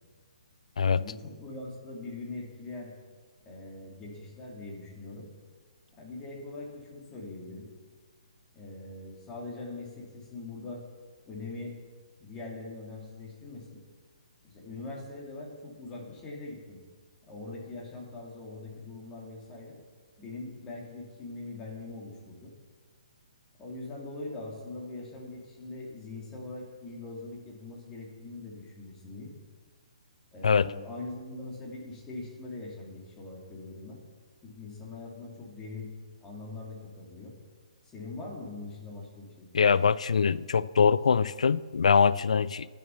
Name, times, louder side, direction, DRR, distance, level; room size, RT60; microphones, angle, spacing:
voice 1, 0.9-2.9 3.4-5.3 6.0-7.7 8.5-10.8 11.3-11.7 12.2-13.8 14.4-16.8 17.3-19.8 20.2-22.5 23.6-29.3 30.3-34.0 34.4-35.9 36.2-37.3 37.8-39.5, left 2 dB, 20° left, 2.6 m, -42 dB
voice 2, 39.5-42.7, left 6 dB, 65° left, 0.3 m, -23 dB
10.5 x 6.4 x 6.9 m
figure-of-eight pair, 130°, 4 cm